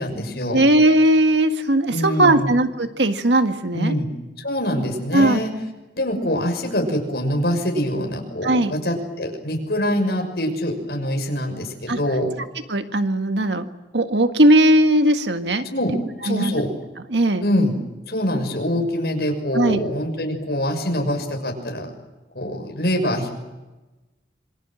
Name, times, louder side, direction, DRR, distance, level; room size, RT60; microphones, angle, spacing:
voice 1, 0.0-0.6 1.9-2.5 3.7-4.1 4.4-5.5 6.0-12.3 15.6-15.9 16.2-16.7 17.4-17.8 18.1-21.9 22.3-23.4, equal, 65° left, 3 dB, 6.4 m, -24 dB
voice 2, 0.5-3.9 5.1-5.4 8.4-8.7 11.9-12.0 12.7-13.7 13.9-15.6 16.3-16.5 17.1-17.4 19.5-19.8, right 1 dB, 85° right, 7 dB, 1.7 m, -18 dB
26.5 x 25.0 x 7.8 m, 1.1 s
head